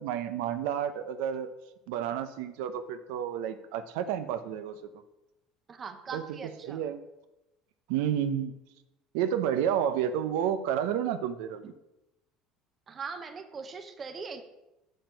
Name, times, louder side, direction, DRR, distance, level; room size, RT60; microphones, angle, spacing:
voice 1, 0.0-1.5 1.9-4.8 6.1-6.4 6.6-7.0 7.9-8.5 9.1-11.7, right 9 dB, 85° right, 9 dB, 0.6 m, -30 dB
voice 2, 5.7-6.8 11.6-11.7 12.9-14.4, right 5 dB, 25° right, 7 dB, 0.7 m, -40 dB
6.6 x 6.1 x 5.2 m, 0.94 s
cardioid pair, 165°, 0 cm